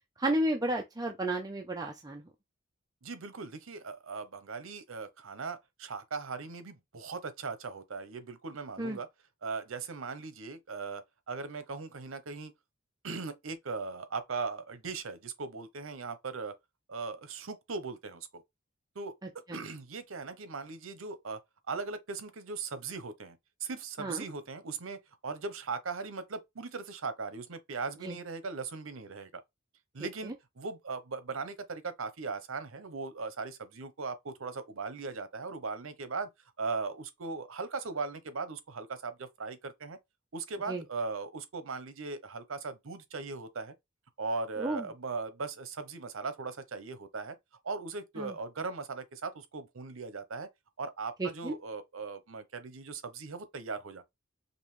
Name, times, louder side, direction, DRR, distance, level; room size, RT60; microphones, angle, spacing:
voice 1, 0.2-2.2 8.8-9.0 19.5-19.6 24.0-24.2 28.0-28.2 30.2-30.3 40.7-40.8 44.6-44.9 48.2-48.3 51.2-51.5, right 1 dB, 20° right, 0.6 m, -32 dB
voice 2, 3.0-9.1 9.4-11.0 11.3-12.5 13.0-16.5 16.9-18.4 18.9-19.1 19.5-21.4 21.7-29.4 29.9-36.3 36.6-40.0 40.3-43.7 44.2-47.4 47.6-50.5 50.8-54.0, right 4 dB, 80° right, 0.8 m, -39 dB
5.3 x 2.5 x 3.2 m
head